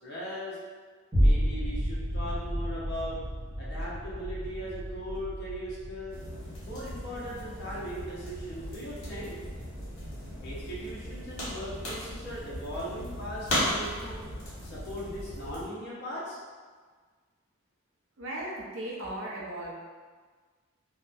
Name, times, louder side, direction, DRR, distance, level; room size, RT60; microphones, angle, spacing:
voice 1, 0.0-0.6 1.2-3.2 3.6-6.2 6.6-9.4 10.4-14.2 14.6-16.4, equal, 50° left, -7 dB, 0.5 m, -39 dB
sound 1, 1.1-9.7 10.2-10.3, equal, 10° right, 1.2 m, -31 dB
sound 2, 3.7-3.8 4.4-4.5 5.1-5.2 5.8-5.9 6.5-6.6 7.2-7.3 7.8-7.9 8.4-8.6, left 1 dB, 30° right, 0.8 m, -51 dB
sound 3, 6.1-15.7, equal, 70° left, 1.1 m, -37 dB
voice 2, 18.2-19.7, right 1 dB, 60° right, -4 dB, 0.5 m, -37 dB
2.6 x 2.1 x 2.3 m, 1.5 s
head